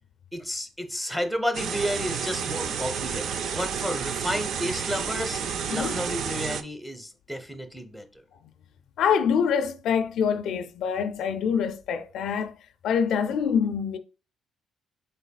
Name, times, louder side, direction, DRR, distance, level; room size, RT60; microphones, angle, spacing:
voice 1, 0.3-8.2, equal, ahead, 0.8 m, -32 dB
sound 1, 1.5-6.6, right 7 dB, 70° right, 0.4 m, -30 dB
voice 2, 9.0-12.6 12.8-14.0, left 7 dB, 75° left, 0.4 m, -25 dB
5.2 x 4.0 x 2.3 m
cardioid pair, 90°, 0 cm